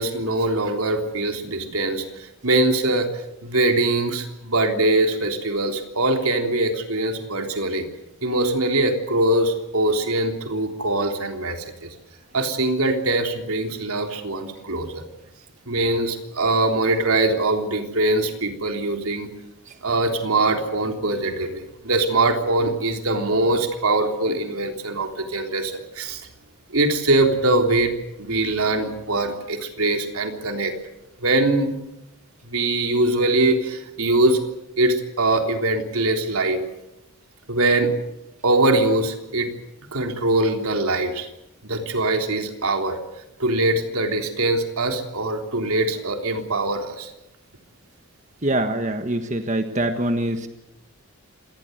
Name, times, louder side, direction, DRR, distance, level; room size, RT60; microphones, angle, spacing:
voice 1, 0.0-3.1 3.4-7.8 8.2-11.9 12.3-15.0 15.7-19.3 19.8-26.2 26.7-27.9 28.2-30.7 31.2-31.7 32.4-34.4 34.8-36.6 37.5-37.9 38.4-39.5 39.9-41.3 41.6-43.0 43.4-47.1, right 2 dB, 85° right, 4 dB, 3.6 m, -22 dB
voice 2, 48.4-50.5, right 1 dB, 35° right, 7 dB, 1.4 m, -24 dB
26.5 x 19.5 x 8.0 m, 0.90 s
head